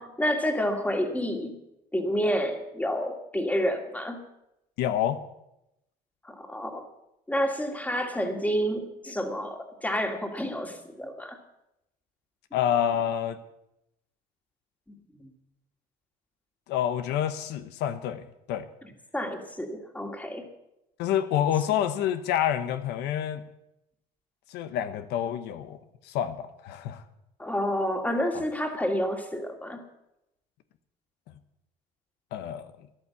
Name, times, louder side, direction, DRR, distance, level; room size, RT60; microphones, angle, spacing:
voice 1, 0.0-1.6 1.9-4.2 6.2-6.9 7.3-11.4 14.9-15.3 19.1-20.4 27.4-29.9, equal, 10° left, 4 dB, 2.2 m, -29 dB
voice 2, 4.8-5.2 12.5-13.4 16.7-18.7 21.0-23.5 24.5-25.8 26.0-27.0 32.3-32.7, left 10 dB, 90° left, 11 dB, 1.0 m, -28 dB
13.5 x 11.5 x 7.1 m, 0.85 s
cardioid pair, 110°, 17 cm